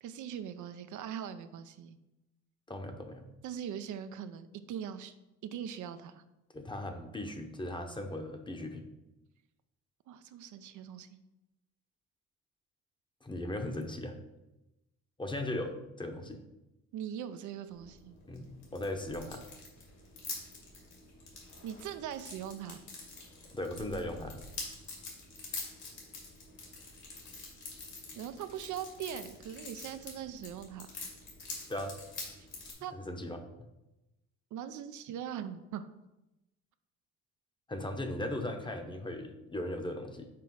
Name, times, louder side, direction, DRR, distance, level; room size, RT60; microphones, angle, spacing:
voice 1, 0.0-2.0 3.4-5.1 5.4-6.2 10.1-11.2 16.9-18.2 21.6-22.8 28.2-30.9 32.4-32.5 32.8-32.9 34.5-35.9, right 9 dB, 75° right, 10 dB, 0.6 m, -41 dB
voice 2, 2.7-3.2 6.5-8.8 13.2-14.2 15.2-16.4 18.3-19.4 23.5-24.4 31.7-32.0 32.9-33.4 37.7-40.3, left 1 dB, 15° left, 5 dB, 0.9 m, -38 dB
sound 1, 17.7-32.7, left 3 dB, 65° left, 2.4 m, -46 dB
6.0 x 4.7 x 4.7 m, 0.96 s
cardioid pair, 90°, 30 cm